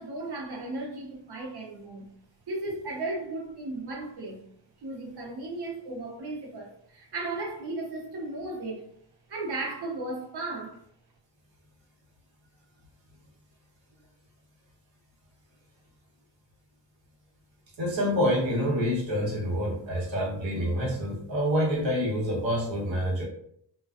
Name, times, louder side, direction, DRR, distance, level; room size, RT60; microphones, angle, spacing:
voice 1, 0.0-2.1 2.5-4.4 4.8-8.8 9.3-10.8, right 2 dB, 60° right, 0.8 m, -35 dB
voice 2, 17.8-23.3, equal, 80° right, 1.0 m, -27 dB
2.4 x 2.3 x 2.3 m
wide cardioid pair, 145°, 45 cm